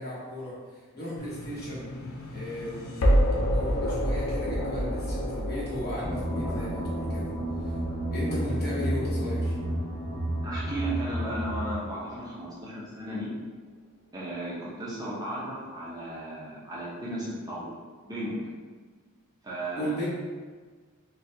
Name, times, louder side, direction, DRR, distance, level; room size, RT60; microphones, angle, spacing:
voice 1, 0.0-1.9 2.3-3.2 3.5-7.3 7.6-7.7 8.1-9.5 19.8-20.1, equal, 45° left, -7 dB, 1.1 m, -36 dB
sound 1, 1.2-12.2, equal, 75° left, 0.5 m, -30 dB
sound 2, 6.0-11.7, right 1 dB, 55° right, 1.3 m, -31 dB
voice 2, 10.4-13.3 14.1-17.7 18.0-18.4 19.4-20.1, right 1 dB, 20° right, -7 dB, 0.7 m, -35 dB
3.9 x 2.3 x 2.7 m, 1.5 s
head